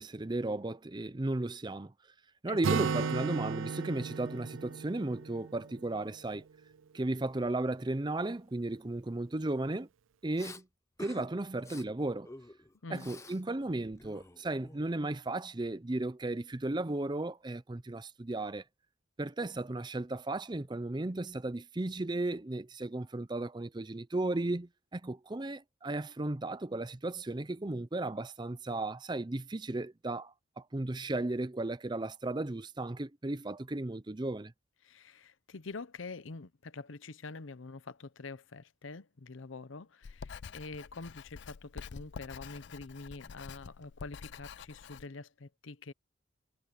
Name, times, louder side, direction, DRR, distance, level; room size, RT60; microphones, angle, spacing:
voice 1, 0.0-1.9 2.4-6.5 6.9-9.9 10.2-10.6 11.0-12.3 12.9-18.6 19.2-34.5, right 2 dB, 20° right, 0.6 m, -35 dB
Acoustic guitar, 2.6-6.4, right 5 dB, 85° right, 0.5 m, -35 dB
Respiratory sounds, 10.4-10.6 11.0-11.3 11.6-11.8 12.2-13.4 13.7-15.1, left 2 dB, 15° left, 0.8 m, -49 dB
voice 2, 34.8-45.9, left 3 dB, 80° left, 0.8 m, -46 dB
Writing, 40.0-45.1, left 6 dB, 60° left, 0.4 m, -47 dB
head